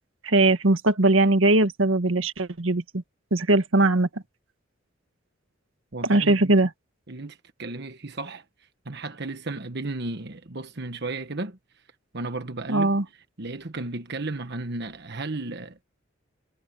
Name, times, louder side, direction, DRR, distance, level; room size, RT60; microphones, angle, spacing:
voice 1, 0.2-3.0 3.3-4.1 6.0-6.7 12.7-13.0, right 2 dB, 85° right, 1.6 m, -20 dB
voice 2, 5.9-6.5 7.1-8.4 8.8-11.6 12.1-13.0 13.4-15.8, right 2 dB, 55° right, 1.3 m, -34 dB
head